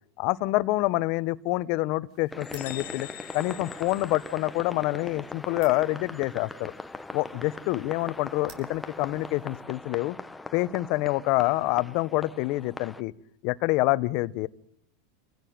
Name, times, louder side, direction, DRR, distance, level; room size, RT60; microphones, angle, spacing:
voice 1, 0.2-3.1 3.3-6.7 7.1-10.2 10.5-13.1 13.4-14.5, left 19 dB, 55° left, 16 dB, 1.1 m, -27 dB
sound 1, 2.1-9.6, right 6 dB, 55° right, 7.0 m, -57 dB
sound 2, 2.3-13.0, left 2 dB, 10° left, 1.1 m, -41 dB
sound 3, 2.4-5.0, left 13 dB, 75° left, 2.0 m, -44 dB
27.5 x 16.0 x 9.5 m, 0.69 s
supercardioid pair, 125°, 0 cm